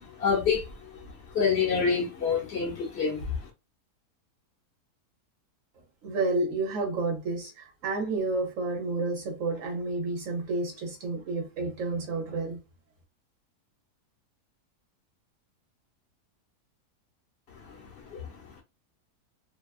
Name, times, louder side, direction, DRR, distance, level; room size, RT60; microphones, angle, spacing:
voice 1, 0.2-0.6 1.3-3.3 18.1-18.2, left 6 dB, 50° left, 0.9 m, -26 dB
voice 2, 6.0-12.6, right 3 dB, 60° right, 1.0 m, -30 dB
2.7 x 2.3 x 2.3 m
omnidirectional pair, 1.7 m